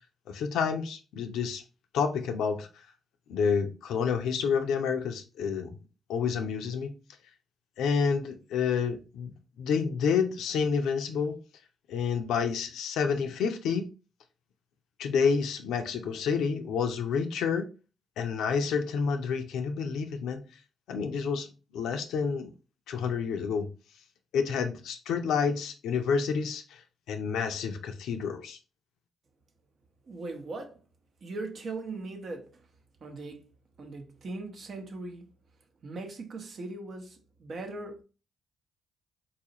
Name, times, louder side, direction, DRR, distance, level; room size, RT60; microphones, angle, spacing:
voice 1, 0.3-1.6 1.9-2.7 3.3-5.8 6.1-6.9 7.8-9.3 9.6-11.3 11.9-13.9 15.0-17.7 18.2-20.4 20.9-21.5 21.7-22.5 22.9-23.7 24.3-26.8 27.1-28.6, left 6 dB, 80° left, 0.5 m, -29 dB
voice 2, 30.0-30.8 31.2-32.6 33.0-33.5 33.8-35.3 35.8-38.0, right 3 dB, 55° right, 0.8 m, -39 dB
4.0 x 2.4 x 2.8 m
supercardioid pair, 55°, 0 cm